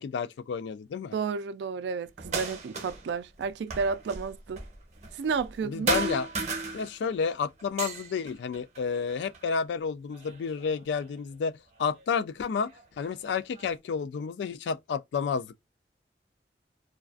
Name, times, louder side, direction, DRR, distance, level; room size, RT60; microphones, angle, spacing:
voice 1, 0.0-1.1 5.6-6.3 6.7-12.7 13.0-15.7, left 6 dB, 85° left, 0.3 m, -31 dB
voice 2, 1.1-4.6 5.1-5.9, right 5 dB, 80° right, 0.3 m, -31 dB
sound 1, 2.2-3.1 3.4-5.6 5.9-7.2 7.6-9.5 10.1-11.0 12.0-12.1 12.7-13.7, right 3 dB, 40° right, 0.7 m, -35 dB
2.4 x 2.2 x 2.3 m
head